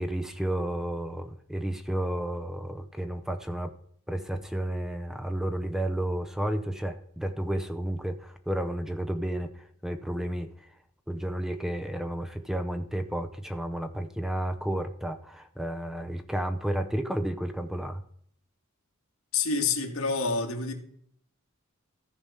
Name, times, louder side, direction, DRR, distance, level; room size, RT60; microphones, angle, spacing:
voice 1, 0.0-3.7 4.1-9.5 9.8-10.5 11.1-18.0, right 1 dB, ahead, 0.6 m, -31 dB
voice 2, 19.3-20.7, left 4 dB, 85° left, 1.8 m, -27 dB
14.0 x 4.8 x 5.6 m
head